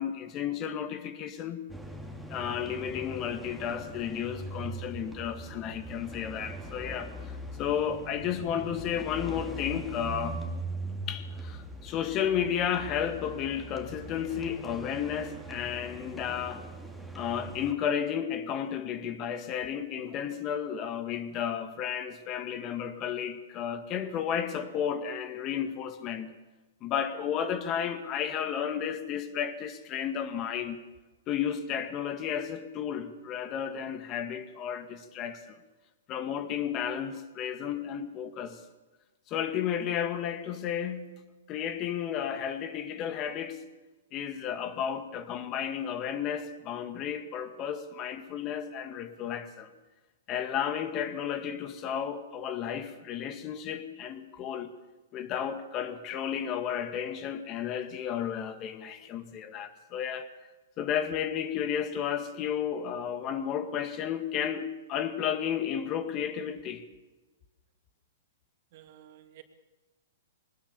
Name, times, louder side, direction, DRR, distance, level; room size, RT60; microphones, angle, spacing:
voice 1, 0.0-1.6 2.3-10.4 11.1-16.6 17.1-26.4 26.8-30.8 31.3-35.6 36.1-38.6 39.3-43.6 44.1-49.7 50.3-54.7 55.1-60.3 60.8-66.8, left 8 dB, 30° left, 2.0 m, -33 dB
sound 1, 1.7-17.7, right 1 dB, ahead, 2.9 m, -41 dB
voice 2, 68.7-69.4, right 12 dB, 55° right, 2.9 m, -52 dB
21.5 x 19.5 x 7.1 m
hypercardioid pair, 135°, 0 cm